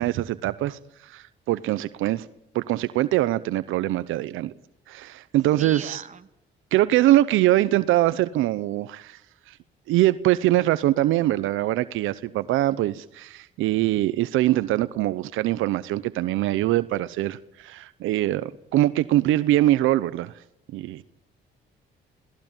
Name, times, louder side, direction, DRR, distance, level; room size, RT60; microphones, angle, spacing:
voice 1, 0.0-2.3 2.5-4.5 4.9-6.0 6.7-9.2 9.5-9.6 9.9-20.3 20.7-21.0, right 15 dB, 90° right, 0.9 m, -23 dB
voice 2, 5.6-6.3 6.8-6.9, right 5 dB, 40° right, 1.9 m, -38 dB
28.5 x 18.0 x 9.0 m
cardioid pair, 90°, 20 cm